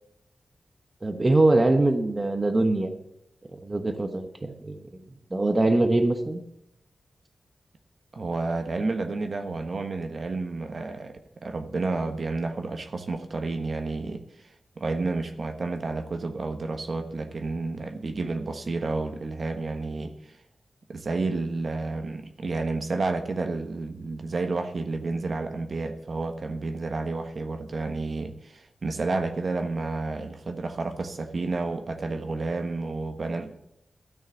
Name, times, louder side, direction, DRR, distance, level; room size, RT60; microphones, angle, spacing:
voice 1, 1.0-2.9 3.5-5.0 5.3-6.4, right 2 dB, 25° right, 7 dB, 1.2 m, -23 dB
voice 2, 8.1-20.4 20.9-33.5, right 3 dB, 50° right, 6 dB, 1.2 m, -30 dB
13.0 x 6.6 x 8.3 m, 0.81 s
wide cardioid pair, 110°, 0 cm